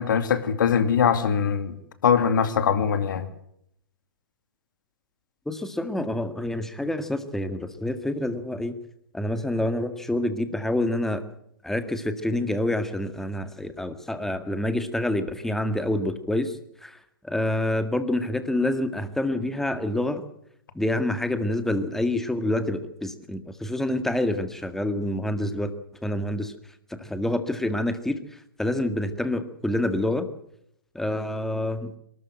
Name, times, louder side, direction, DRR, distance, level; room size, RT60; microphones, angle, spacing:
voice 1, 0.0-1.8 2.0-3.3, left 7 dB, 65° left, 10 dB, 2.4 m, -22 dB
voice 2, 5.5-8.8 9.1-11.2 11.6-17.0 17.2-20.2 20.8-25.7 26.0-26.5 27.0-28.2 28.6-30.3 30.9-31.9, left 1 dB, 5° left, 9 dB, 1.9 m, -27 dB
23.5 x 13.5 x 9.1 m, 0.75 s
figure-of-eight pair, 120°, 12 cm